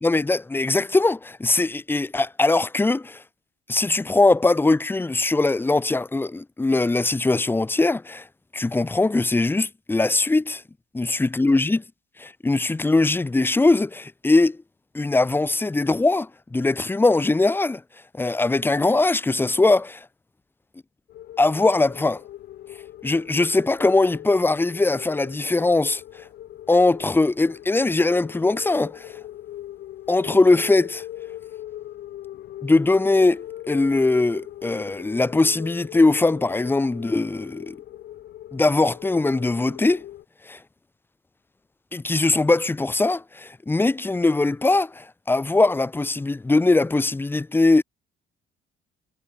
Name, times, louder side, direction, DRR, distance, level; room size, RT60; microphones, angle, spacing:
voice 1, 0.0-3.2 3.7-8.2 8.5-10.6 11.0-11.8 12.2-14.6 14.9-17.8 18.1-20.0 21.4-22.2 23.0-26.0 26.7-29.1 30.1-31.0 32.6-37.8 38.5-40.0 40.5-40.6 41.9-47.8, left 2 dB, 10° left, 1.1 m, -21 dB
sound 1, 21.1-40.2, left 13 dB, 65° left, 3.7 m, -40 dB
cardioid pair, 110°, 17 cm